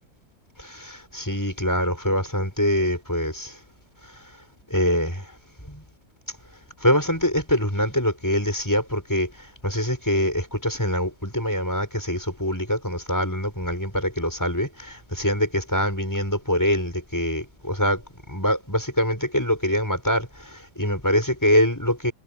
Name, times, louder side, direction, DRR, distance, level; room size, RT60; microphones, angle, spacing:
voice 1, 0.6-3.6 4.7-5.3 5.6-5.8 6.8-18.0 18.3-22.1, equal, 5° left, 6.0 m, -24 dB
omnidirectional pair, 4.8 m